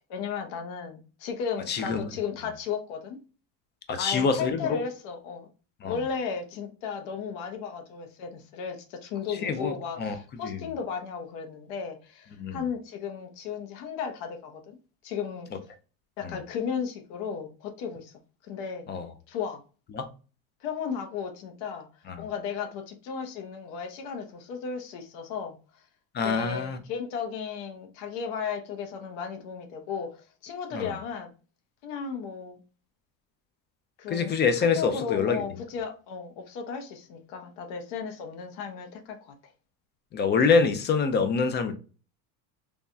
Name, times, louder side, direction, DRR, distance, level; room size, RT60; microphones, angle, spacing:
voice 1, 0.1-3.2 4.0-5.5 5.8-14.8 15.0-15.5 16.2-18.1 18.4-18.9 19.3-19.6 20.6-21.9 22.2-25.6 26.2-30.2 30.4-31.3 31.8-32.6 34.0-39.4, left 6 dB, 70° left, 0.9 m, -35 dB
voice 2, 1.7-2.0 3.9-4.8 5.8-6.0 9.3-10.2 10.4-10.6 12.4-12.6 16.2-16.3 18.9-19.1 19.9-20.1 22.1-22.2 26.1-26.8 30.7-30.9 34.1-35.4 40.1-41.7, left 5 dB, 25° left, 0.3 m, -26 dB
3.3 x 2.2 x 2.5 m
supercardioid pair, 115°, 44 cm